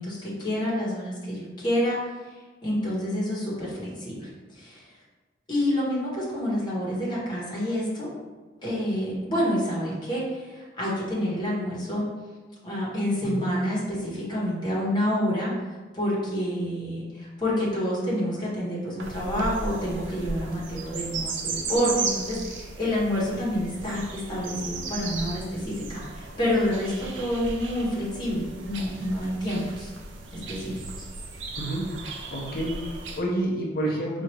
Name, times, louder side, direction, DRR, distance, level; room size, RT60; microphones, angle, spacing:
voice 1, 0.0-2.0 2.6-4.8 5.5-8.1 8.6-12.1 12.6-15.5 15.9-29.9 30.3-31.1, equal, 25° left, -6 dB, 1.2 m, -28 dB
sound 1, 19.0-33.2, right 3 dB, 70° right, 0.5 m, -36 dB
voice 2, 31.6-31.9 32.3-34.2, right 1 dB, 55° left, -3 dB, 0.7 m, -29 dB
4.6 x 2.6 x 3.1 m, 1.3 s
head